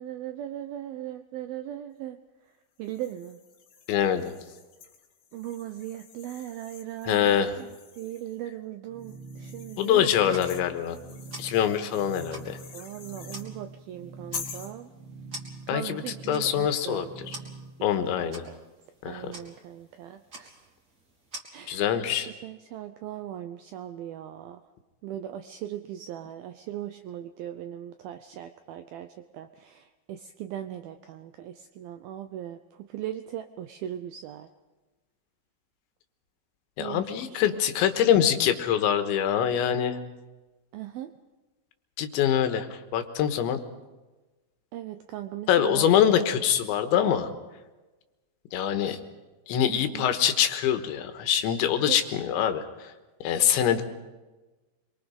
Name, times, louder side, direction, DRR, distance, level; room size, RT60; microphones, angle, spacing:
voice 1, 0.0-2.2 2.8-3.4 5.3-7.7 7.9-10.4 12.7-14.9 15.7-17.5 18.0-18.6 19.1-20.7 21.5-21.9 22.1-24.6 25.0-34.5 36.8-37.8 40.7-41.1 44.7-46.0 49.7-50.1 51.8-52.0, right 12 dB, 80° right, 8 dB, 2.1 m, -39 dB
sound 1, 2.8-8.4 9.0-13.5 14.3-14.8, left 7 dB, 60° left, 3.4 m, -46 dB
voice 2, 3.9-4.3 7.0-7.5 9.8-11.0 11.4-12.6 15.7-16.0 16.3-17.1 17.8-18.4 19.0-19.3 21.7-22.3 36.8-40.0 42.0-43.6 45.5-47.3 48.5-49.0 49.5-52.9 53.2-53.8, left 9 dB, 85° left, 8 dB, 3.7 m, -24 dB
sound 2, 8.9-17.7, right 4 dB, 60° right, 4.9 m, -45 dB
sound 3, 10.0-21.4, right 1 dB, 25° right, 3.1 m, -48 dB
27.0 x 23.0 x 5.3 m, 1.2 s
omnidirectional pair, 5.2 m